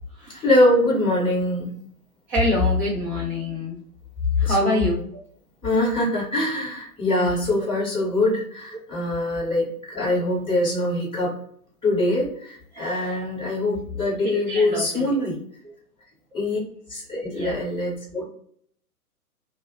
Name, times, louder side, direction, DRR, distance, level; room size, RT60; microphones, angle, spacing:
voice 1, 0.3-1.7 4.4-4.9 5.6-11.3 11.8-15.4 16.3-16.6 16.9-18.2, left 1 dB, 10° left, -9 dB, 0.8 m, -23 dB
voice 2, 2.3-3.8 4.4-5.0 12.7-13.2 14.2-15.1 17.3-17.6 18.2-18.3, left 2 dB, 15° right, -5 dB, 0.4 m, -25 dB
2.5 x 2.0 x 2.5 m, 0.63 s
figure-of-eight pair, 120°, 46 cm